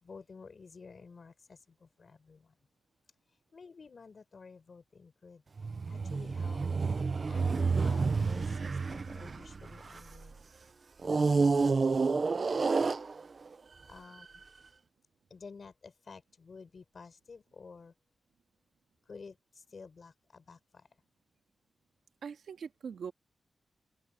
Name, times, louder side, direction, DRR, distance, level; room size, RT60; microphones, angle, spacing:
voice 1, 0.0-2.5 3.5-5.4 5.9-6.6 7.3-10.3 11.1-12.0 12.4-13.1 13.9-14.4 15.3-17.9 19.1-19.4 19.7-20.6, left 4 dB, 45° left, 4.7 m, -52 dB
sound 1, 5.6-10.3 11.0-13.5 14.2-14.4, right 4 dB, 35° right, 0.7 m, -29 dB
voice 2, 22.2-23.1, right 6 dB, 80° right, 2.0 m, -41 dB
open air
wide cardioid pair, 175°, 0 cm